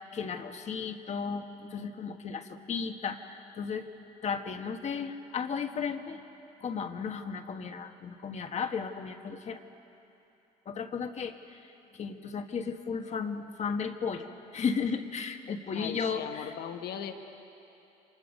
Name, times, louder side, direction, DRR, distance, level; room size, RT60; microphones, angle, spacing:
voice 1, 0.1-3.9 4.2-6.2 6.6-9.6 10.6-11.6 11.9-16.5, left 6 dB, 40° left, 6 dB, 1.5 m, -34 dB
voice 2, 15.7-17.1, left 8 dB, 70° left, 6 dB, 1.4 m, -38 dB
29.0 x 25.5 x 5.4 m, 2.9 s
cardioid pair, 110°, 17 cm